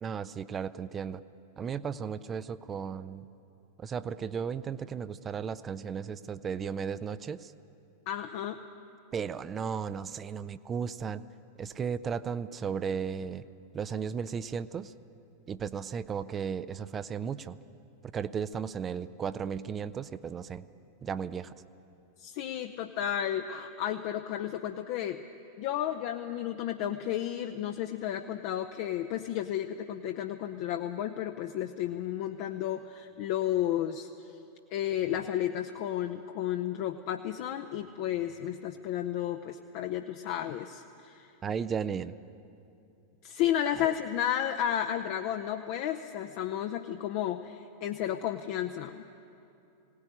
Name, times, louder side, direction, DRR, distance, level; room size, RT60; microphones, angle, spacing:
voice 1, 0.0-1.2 1.6-3.3 3.8-7.5 9.1-11.2 11.6-13.4 13.7-14.9 15.5-17.6 18.1-20.6 21.0-21.5 41.4-42.2 43.8-43.9, right 7 dB, 25° right, 14 dB, 0.6 m, -35 dB
voice 2, 8.1-8.6 22.2-25.2 25.6-34.4 34.7-41.3 43.2-49.1, left 11 dB, 45° left, 5 dB, 0.8 m, -32 dB
20.0 x 18.0 x 9.9 m, 2.7 s
figure-of-eight pair, 90°, 0 cm